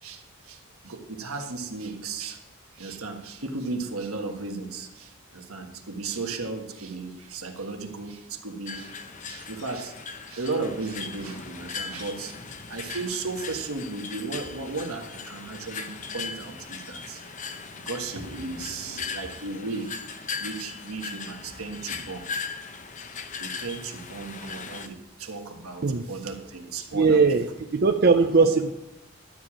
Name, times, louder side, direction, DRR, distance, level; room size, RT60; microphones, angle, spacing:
voice 1, 0.0-2.4 2.7-8.9 9.2-9.9 10.3-12.3 12.7-17.3 17.8-19.9 20.4-22.3 23.4-27.2 28.2-28.5, right 3 dB, 80° right, 4 dB, 1.5 m, -35 dB
sound 1, 8.7-24.9, left 5 dB, 35° left, 0.7 m, -38 dB
voice 2, 26.9-28.7, right 4 dB, 45° right, 6 dB, 0.5 m, -20 dB
12.0 x 4.9 x 8.7 m, 0.94 s
head